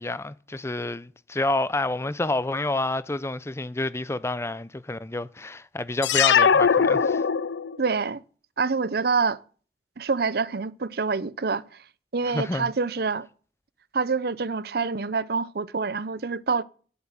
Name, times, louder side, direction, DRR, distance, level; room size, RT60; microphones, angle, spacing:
voice 1, 0.0-7.2 12.2-12.7, left 2 dB, 15° left, 0.5 m, -29 dB
sound 1, 6.0-7.9, left 6 dB, 85° left, 0.5 m, -20 dB
voice 2, 7.8-8.2 8.6-9.4 10.0-11.6 12.1-13.3 13.9-16.6, right 4 dB, 60° right, 0.7 m, -26 dB
11.5 x 7.5 x 7.4 m
head